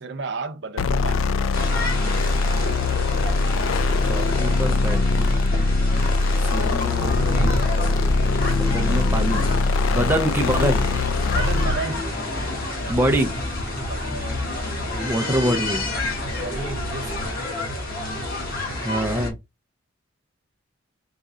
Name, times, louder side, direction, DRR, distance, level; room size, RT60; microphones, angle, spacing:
voice 1, 0.0-1.3 9.7-10.1 11.3-12.2 13.7-14.2 16.3-17.6, right 4 dB, 55° right, 0.6 m, -34 dB
sound 1, 0.8-11.8, left 3 dB, 75° left, 0.4 m, -22 dB
sound 2, 1.5-19.3, left 1 dB, 45° left, 1.3 m, -29 dB
voice 2, 4.0-5.4 6.5-7.2 8.6-9.5 9.9-10.9 12.9-13.4 14.9-15.9 18.8-19.4, right 1 dB, 10° right, 0.4 m, -25 dB
sound 3, 7.2-17.3, equal, 15° left, 1.2 m, -38 dB
4.0 x 2.4 x 3.7 m
head